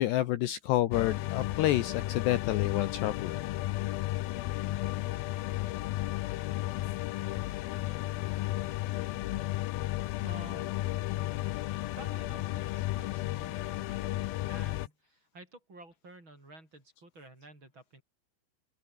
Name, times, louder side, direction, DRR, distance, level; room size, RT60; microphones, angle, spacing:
voice 1, 0.0-3.4, left 14 dB, 70° left, 2.9 m, -29 dB
sound 1, 0.9-14.9, left 16 dB, 90° left, 2.1 m, -33 dB
voice 2, 10.2-11.2 12.0-18.0, right 2 dB, 25° right, 7.8 m, -52 dB
open air
omnidirectional pair, 5.5 m